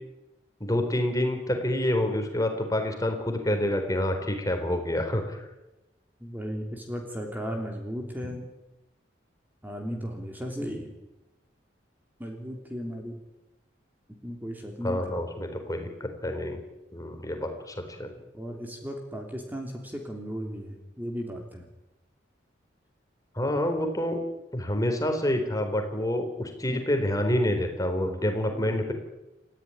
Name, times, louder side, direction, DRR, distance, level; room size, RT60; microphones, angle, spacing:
voice 1, 0.6-5.5 14.8-16.6 16.9-18.1 23.3-24.2 24.5-28.9, left 1 dB, 20° left, 5 dB, 4.2 m, -27 dB
voice 2, 6.2-8.4 9.6-10.9 12.2-13.2 14.2-15.2 18.3-21.6 26.7-26.9 28.5-28.8, equal, 10° right, 2 dB, 3.2 m, -36 dB
30.0 x 15.0 x 10.0 m, 0.98 s
head